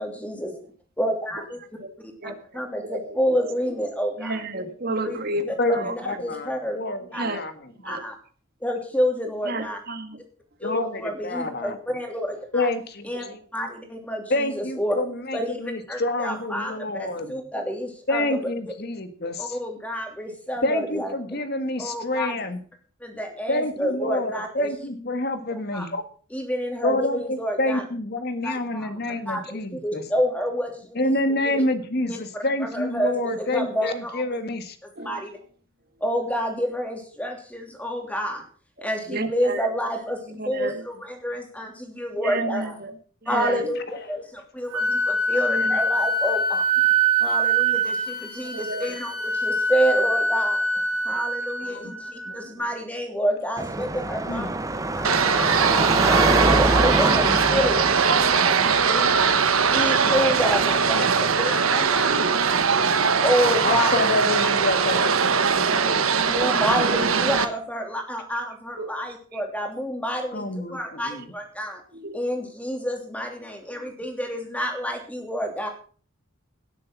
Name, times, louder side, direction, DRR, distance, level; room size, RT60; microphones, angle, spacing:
voice 1, 0.0-0.5 1.0-1.6 2.2-4.4 5.0-5.2 5.5-6.8 7.1-7.3 7.8-8.1 8.6-9.8 10.6-12.7 13.0-13.3 13.5-15.1 15.3-18.7 19.4-21.1 21.8-22.4 23.0-24.7 25.7-25.9 26.3-27.8 28.4-28.9 29.3-31.1 31.4-31.6 32.1-34.4 34.8-35.4 36.0-38.4 38.8-42.8 43.3-46.6 47.2-50.6 51.0-54.6 55.0-55.7 56.0-59.1 59.7-62.3 63.2-64.5 65.7-65.8 66.3-71.8 72.1-75.7, equal, 5° left, 3 dB, 2.9 m, -29 dB
voice 2, 2.8-3.2 4.2-5.9 7.1-7.4 7.8-8.0 9.5-10.2 13.1-13.4 35.0-35.2 38.8-39.7 40.4-40.8 42.2-42.9 43.2-43.6 45.5-45.8 48.4-49.0 68.8-68.9 69.3-69.5 72.0-72.2 73.8-73.9, right 2 dB, 45° right, 8 dB, 2.0 m, -31 dB
voice 3, 5.6-6.5 6.8-7.0 7.3-7.5 10.6-11.7 12.5-13.4 14.3-17.3 18.1-19.4 20.6-22.6 23.5-26.0 26.8-30.0 31.0-34.7 51.7-51.9 52.3-52.4 54.3-54.5 58.5-59.3 60.0-60.1 62.5-63.2 63.6-65.1 65.4-66.2 70.3-71.2, left 1 dB, 50° left, 9 dB, 1.7 m, -28 dB
Wind instrument woodwind instrument, 44.7-52.5, right 2 dB, 70° right, 4.0 m, -24 dB
Car passing by / Traffic noise roadway noise / Engine, 53.6-60.9, right 2 dB, 15° right, 0.9 m, -25 dB
sound 1, 55.0-67.4, right 6 dB, 85° right, 1.3 m, -21 dB
17.5 x 7.7 x 6.0 m, 0.42 s
head